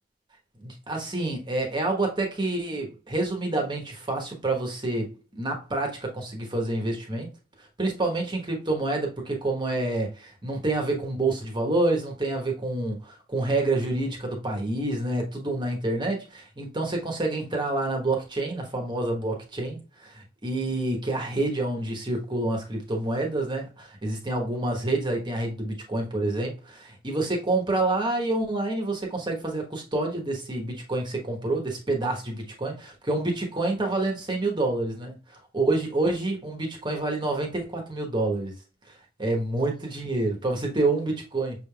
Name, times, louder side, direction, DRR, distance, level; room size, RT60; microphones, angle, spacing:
voice 1, 0.6-5.1 5.4-7.3 7.8-35.2 35.5-38.5 39.2-41.6, right 2 dB, 20° right, 1.1 m, -28 dB
6.1 x 3.3 x 2.3 m
head